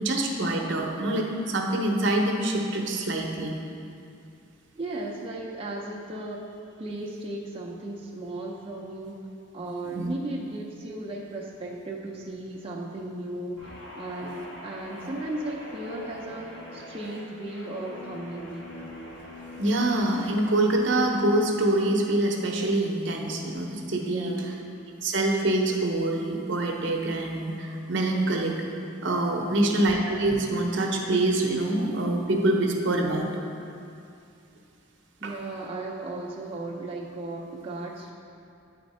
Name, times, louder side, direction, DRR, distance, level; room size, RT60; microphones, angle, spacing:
voice 1, 0.0-3.5 9.9-10.1 14.2-14.3 19.6-24.3 25.0-28.5 29.0-33.3 35.2-35.3, right 1 dB, 65° right, 1 dB, 0.7 m, -25 dB
voice 2, 4.8-6.4 6.8-9.2 9.5-18.9 24.1-24.6 35.2-38.1, right 2 dB, 25° right, -4 dB, 0.5 m, -36 dB
Guitar, 13.6-22.2 22.5-22.9, left 1 dB, 65° left, 1.4 m, -44 dB
8.9 x 4.3 x 4.2 m, 2.5 s
head